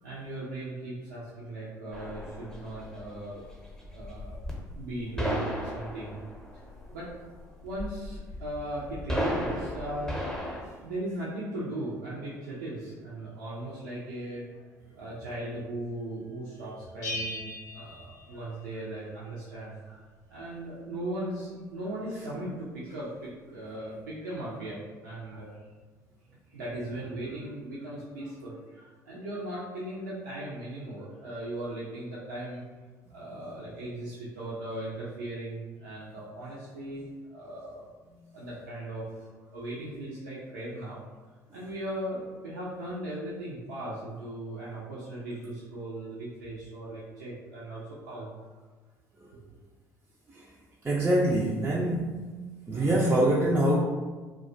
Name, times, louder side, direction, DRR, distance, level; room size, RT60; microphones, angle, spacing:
voice 1, 0.0-3.4 3.9-4.4 4.7-6.2 6.5-7.1 7.6-10.2 10.8-20.0 20.3-25.6 26.5-32.6 33.1-37.9 38.3-41.0 41.5-48.3 49.2-49.4, right 1 dB, 80° right, -8 dB, 0.4 m, -38 dB
sound 1, 1.9-10.6, equal, 5° left, 0.7 m, -35 dB
Bell, 17.0-18.9, left 2 dB, 80° left, 0.7 m, -38 dB
voice 2, 50.8-52.2 52.7-53.8, right 1 dB, 20° right, -4 dB, 0.4 m, -24 dB
2.3 x 2.2 x 2.5 m, 1.4 s
figure-of-eight pair, 55°, 9 cm